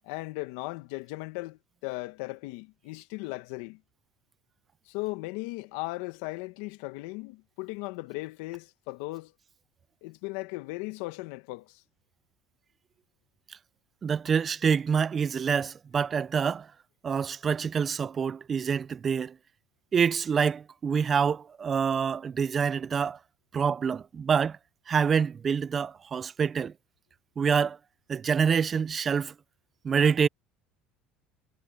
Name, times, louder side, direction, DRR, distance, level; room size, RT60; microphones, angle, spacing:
voice 1, 0.0-3.8 4.8-9.3 10.0-11.8, left 22 dB, 80° left, 1.7 m, -37 dB
voice 2, 14.0-16.7 17.0-19.3 19.9-23.2 23.5-24.6 24.9-26.7 27.4-27.8 28.1-29.3 29.8-30.3, right 6 dB, 35° right, 0.7 m, -26 dB
supercardioid pair, 95°, 0 cm